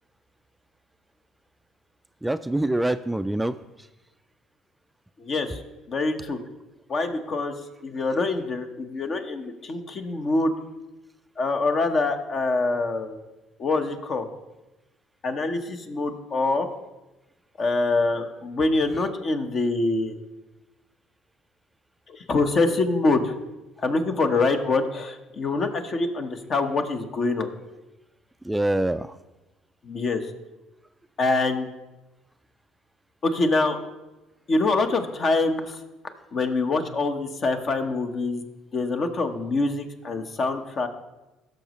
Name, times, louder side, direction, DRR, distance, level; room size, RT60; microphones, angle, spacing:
voice 1, 2.2-3.9 28.4-29.2, right 1 dB, 10° right, 11 dB, 0.3 m, -25 dB
voice 2, 5.2-5.6 5.9-6.4 6.9-7.5 7.8-10.5 11.4-13.2 13.6-14.3 15.2-16.7 17.6-20.1 22.1-23.3 23.8-27.5 29.8-30.3 31.2-31.7 33.2-33.8 34.5-35.8 36.3-38.4 38.7-40.9, left 3 dB, 50° left, 6 dB, 1.1 m, -25 dB
16.5 x 6.5 x 3.1 m, 1.0 s
hypercardioid pair, 65°, 0 cm